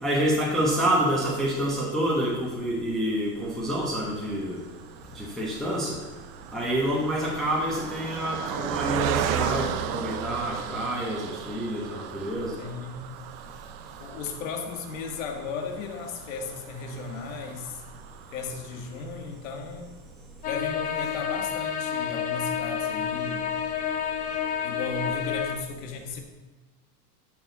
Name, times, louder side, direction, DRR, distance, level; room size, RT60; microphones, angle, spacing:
voice 1, 0.0-4.6 5.1-6.0 6.5-12.5, right 1 dB, ahead, -6 dB, 1.0 m, -27 dB
Car passing by, 3.7-19.2 19.7-19.8 20.1-20.2, right 10 dB, 45° right, 0.6 m, -36 dB
voice 2, 12.6-13.1 14.0-17.8 18.3-19.9 20.4-23.6 24.6-26.2, left 4 dB, 60° left, 4 dB, 1.7 m, -35 dB
sound 1, 20.4-25.5, left 8 dB, 20° left, 0.5 m, -29 dB
12.5 x 6.3 x 4.0 m, 1.3 s
supercardioid pair, 155°, 45 cm